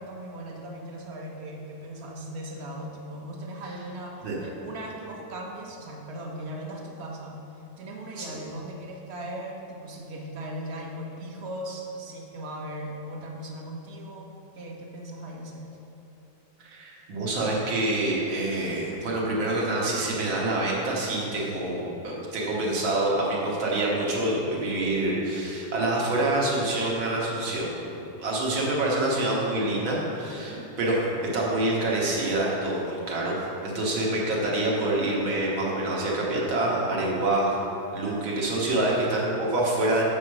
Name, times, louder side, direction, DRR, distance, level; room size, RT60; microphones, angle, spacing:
voice 1, 0.0-15.7 30.3-30.7 39.9-40.0, right 1 dB, 50° right, 0 dB, 0.8 m, -38 dB
voice 2, 16.6-27.7 28.0-37.6 37.9-40.0, right 2 dB, 80° right, -4 dB, 2.2 m, -26 dB
7.8 x 4.8 x 6.3 m, 3.0 s
omnidirectional pair, 2.1 m